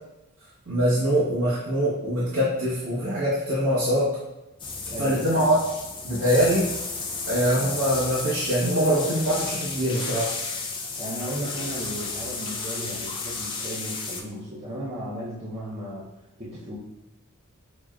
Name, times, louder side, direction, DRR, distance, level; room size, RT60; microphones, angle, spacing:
voice 1, 0.7-4.1 5.0-5.5 6.0-6.6 7.3-10.3, equal, 70° right, -10 dB, 1.0 m, -23 dB
sound 1, 4.6-14.2, left 4 dB, 25° left, 0.5 m, -33 dB
voice 2, 4.9-5.3 11.0-16.1 16.4-16.8, equal, 30° right, -10 dB, 0.7 m, -35 dB
6.2 x 2.1 x 2.4 m, 0.97 s
head